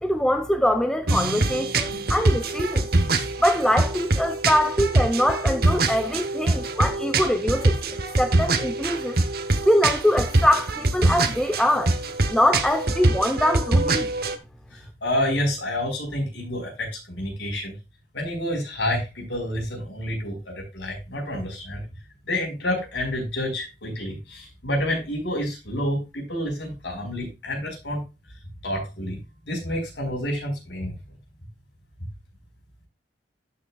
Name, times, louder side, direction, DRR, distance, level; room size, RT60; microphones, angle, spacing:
voice 1, 0.0-2.9 3.4-7.7 8.2-9.2 9.6-11.9 12.3-14.1, left 1 dB, 5° left, 0.7 m, -23 dB
sound 1, 1.1-14.4, right 2 dB, 55° right, 0.9 m, -24 dB
voice 2, 14.7-17.7 18.1-21.8 22.3-28.0 28.6-29.2 29.4-30.9, left 1 dB, 75° left, 4.4 m, -29 dB
12.5 x 6.0 x 2.3 m
head